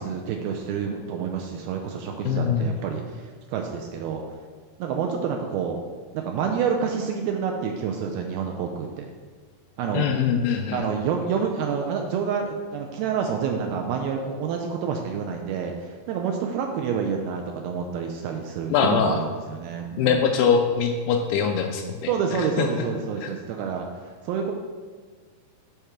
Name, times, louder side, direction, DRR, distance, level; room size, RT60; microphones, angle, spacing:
voice 1, 0.0-4.2 4.8-5.8 6.1-9.1 9.8-10.1 10.7-20.2 22.1-23.9 24.2-24.5, right 6 dB, 85° right, 2 dB, 2.2 m, -28 dB
voice 2, 2.3-2.7 9.9-10.9 18.7-19.2 20.0-22.1 22.6-22.7 23.2-23.3, left 6 dB, 85° left, 3 dB, 2.3 m, -22 dB
8.2 x 3.6 x 5.8 m, 1.5 s
omnidirectional pair, 4.7 m